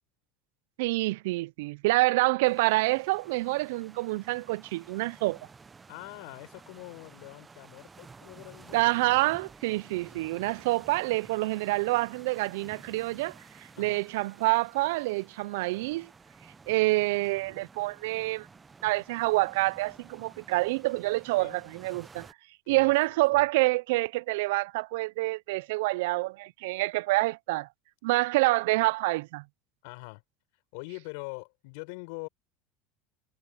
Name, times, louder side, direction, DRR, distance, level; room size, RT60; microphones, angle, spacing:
voice 1, 0.8-5.4 8.7-16.1 16.7-18.5 18.8-22.3 22.7-27.7 28.0-29.4, right 21 dB, 80° right, 0.3 m, -27 dB
sound 1, 2.4-22.3, right 4 dB, 15° right, 0.5 m, -53 dB
voice 2, 5.9-8.9 13.7-14.1 21.4-21.7 22.6-22.9 23.3-23.4 29.8-30.2 30.7-32.3, left 29 dB, 75° left, 5.0 m, -43 dB
cardioid pair, 150°, 0 cm